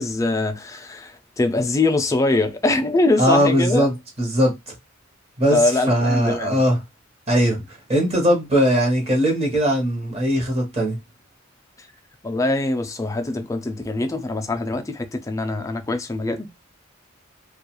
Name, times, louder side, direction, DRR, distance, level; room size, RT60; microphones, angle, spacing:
voice 1, 0.0-3.9 5.5-6.6 12.2-16.5, left 2 dB, 15° left, 0.3 m, -23 dB
voice 2, 3.2-4.7 5.4-5.6 5.9-6.8 7.3-7.6 7.9-11.0, equal, 30° right, 0.9 m, -20 dB
2.3 x 2.3 x 2.9 m
head